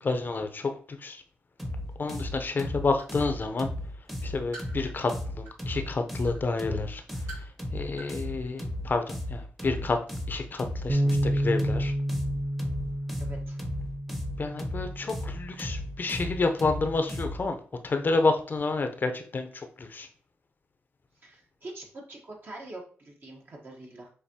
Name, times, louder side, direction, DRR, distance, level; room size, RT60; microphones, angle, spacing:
voice 1, 0.0-1.2 2.0-3.7 4.2-7.0 7.4-7.5 7.7-11.9 14.4-17.6 17.8-20.1, left 3 dB, 45° left, 7 dB, 0.7 m, -29 dB
sound 1, 1.6-17.5, left 1 dB, 5° right, 0.9 m, -35 dB
sound 2, 1.9-2.0 2.5-3.2 3.7-5.7 6.2-6.4 7.0-7.6 7.9-8.1 8.4-8.5, right 3 dB, 75° right, 1.6 m, -46 dB
Bass guitar, 10.9-17.1, equal, 35° right, 0.6 m, -31 dB
voice 2, 13.2-13.6 21.2-24.1, right 2 dB, 50° right, -1 dB, 1.3 m, -44 dB
6.6 x 2.6 x 2.8 m, 0.44 s
cardioid pair, 65°, 5 cm